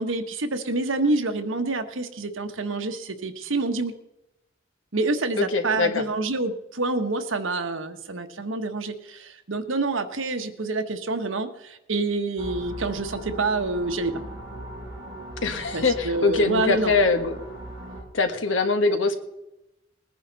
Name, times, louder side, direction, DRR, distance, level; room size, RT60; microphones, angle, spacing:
voice 1, 0.0-3.9 4.9-14.2 15.7-17.0, right 3 dB, 85° right, 7 dB, 1.2 m, -27 dB
voice 2, 5.4-6.0 15.4-17.4 18.1-19.1, left 3 dB, 75° left, 7 dB, 1.4 m, -23 dB
sound 1, 12.4-18.0, right 1 dB, 20° right, 6.2 m, -39 dB
20.0 x 10.0 x 4.0 m, 0.92 s
head